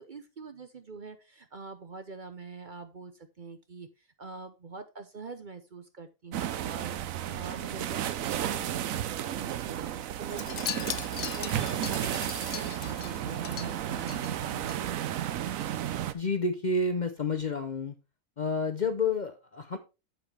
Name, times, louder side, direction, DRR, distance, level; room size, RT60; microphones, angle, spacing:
voice 1, 0.0-14.9, right 4 dB, 45° right, 9 dB, 0.8 m, -45 dB
sound 1, 6.3-16.1, right 11 dB, 80° right, 1.1 m, -33 dB
Wind chime, 10.3-14.8 15.1-15.4 15.6-15.7, left 9 dB, 85° left, 0.3 m, -39 dB
voice 2, 16.1-17.9 18.4-19.8, left 3 dB, 45° left, 7 dB, 0.7 m, -29 dB
8.4 x 7.4 x 3.4 m, 0.28 s
omnidirectional pair, 1.4 m